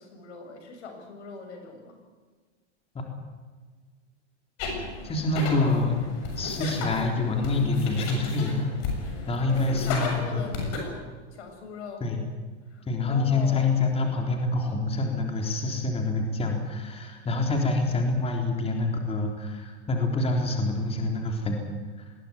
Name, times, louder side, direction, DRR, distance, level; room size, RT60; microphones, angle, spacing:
voice 1, 0.0-2.0 9.4-12.1 12.6-13.7, left 5 dB, 80° left, 4 dB, 6.8 m, -41 dB
sound 1, 4.6-10.8, left 4 dB, 50° left, 7.1 m, -34 dB
voice 2, 5.0-6.0 6.4-8.7 9.3-10.5 12.0-12.2 12.9-21.6, left 3 dB, 15° left, 2 dB, 3.8 m, -26 dB
20.5 x 16.5 x 9.7 m, 1.4 s
hypercardioid pair, 125°, 34 cm